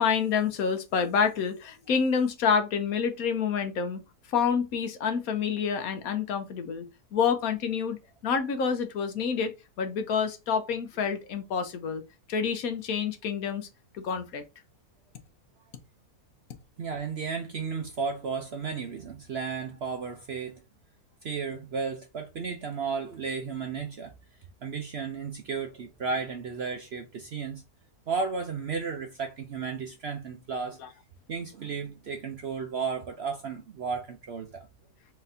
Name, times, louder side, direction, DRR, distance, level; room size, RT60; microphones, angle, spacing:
voice 1, 0.0-4.0 4.3-12.0 12.3-13.7 13.9-14.4, left 6 dB, 70° left, 1.2 m, -28 dB
voice 2, 16.8-20.6 21.2-24.1 24.6-27.6 28.1-30.8 31.3-34.7, right 5 dB, 60° right, 0.7 m, -33 dB
4.2 x 4.0 x 2.6 m
omnidirectional pair, 1.6 m